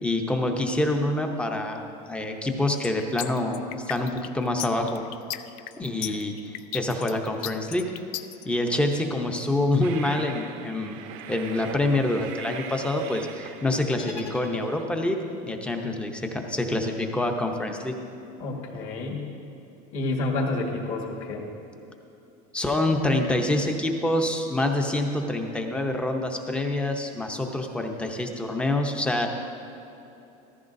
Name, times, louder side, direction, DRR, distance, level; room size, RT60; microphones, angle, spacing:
voice 1, 0.0-5.0 5.8-7.9 8.5-11.0 11.3-15.2 15.5-17.9 22.5-29.3, left 2 dB, 5° left, 3 dB, 0.6 m, -26 dB
sound 1, 2.8-8.4, left 14 dB, 75° left, 0.4 m, -35 dB
Train, 9.8-14.8, right 8 dB, 60° right, 0.7 m, -42 dB
sound 2, 13.9-15.2, left 3 dB, 35° left, 1.2 m, -42 dB
voice 2, 18.4-19.3 19.9-21.4, left 2 dB, 50° left, 0 dB, 1.6 m, -29 dB
14.5 x 14.0 x 2.6 m, 2.9 s
cardioid pair, 160°, 18 cm